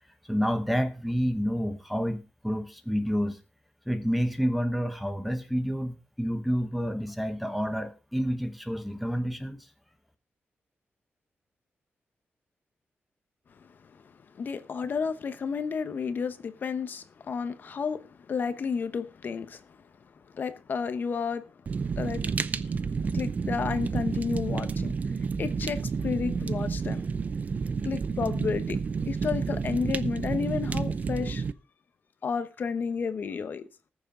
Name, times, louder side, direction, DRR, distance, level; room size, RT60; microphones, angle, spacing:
voice 1, 0.3-3.4 3.9-9.6, equal, ahead, 1.1 m, -29 dB
voice 2, 14.3-19.6 20.3-21.5 22.0-22.2 23.1-24.9 25.4-27.0 27.8-28.8 29.1-31.4 32.2-33.6, left 5 dB, 50° left, 0.9 m, -31 dB
Fire, 21.7-31.5, right 5 dB, 40° right, 0.6 m, -30 dB
19.5 x 7.2 x 3.7 m
wide cardioid pair, 175°, 4 cm